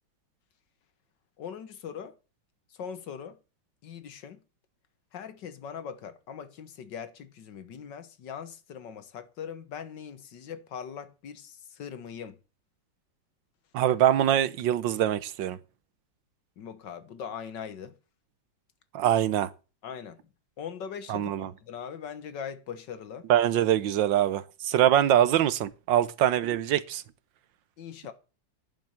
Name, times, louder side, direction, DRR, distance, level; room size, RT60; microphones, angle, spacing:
voice 1, 1.4-2.2 2.7-3.4 3.8-4.4 5.1-12.4 16.6-18.0 19.8-20.2 20.6-23.3 27.8-28.1, left 7 dB, 70° left, 1.9 m, -41 dB
voice 2, 13.7-15.6 18.9-19.5 21.1-21.5 23.3-27.0, right 11 dB, 80° right, 1.5 m, -24 dB
11.0 x 7.4 x 8.9 m
omnidirectional pair, 2.0 m